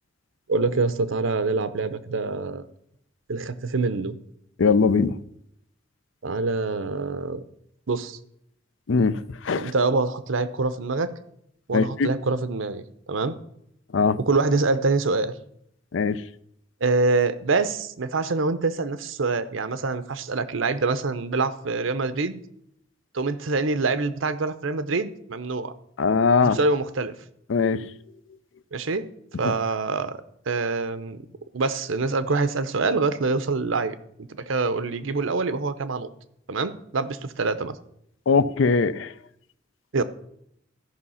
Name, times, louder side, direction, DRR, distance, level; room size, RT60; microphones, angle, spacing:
voice 1, 0.5-2.6 3.3-4.2 6.2-7.4 7.9-8.2 9.6-11.1 11.7-13.4 14.2-15.3 16.8-22.4 23.1-25.7 26.4-27.1 28.7-29.1 29.4-30.2 30.5-31.2 31.5-36.1 36.5-37.8 39.9-40.0, right 3 dB, 75° right, 0.8 m, -25 dB
voice 2, 4.6-5.1 8.9-9.2 9.5-9.7 11.7-12.1 13.9-14.2 15.9-16.2 26.0-26.6 27.5-27.8 38.3-39.1, left 5 dB, 70° left, 0.5 m, -20 dB
13.5 x 5.6 x 5.6 m
head